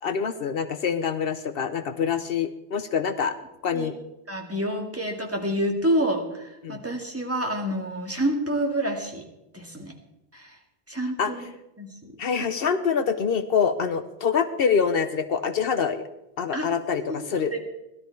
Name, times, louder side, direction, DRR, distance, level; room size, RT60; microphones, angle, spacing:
voice 1, 0.0-3.4 3.6-4.0 6.6-6.8 11.2-11.3 12.2-16.0 16.4-17.5, left 6 dB, 70° left, 10 dB, 0.9 m, -25 dB
voice 2, 4.3-9.2 9.5-9.9 10.3-10.6 10.9-11.4 11.8-12.5 16.5-16.7 16.9-17.6, right 1 dB, 15° right, 1 dB, 2.0 m, -28 dB
17.0 x 12.5 x 4.6 m, 0.92 s
omnidirectional pair, 1.0 m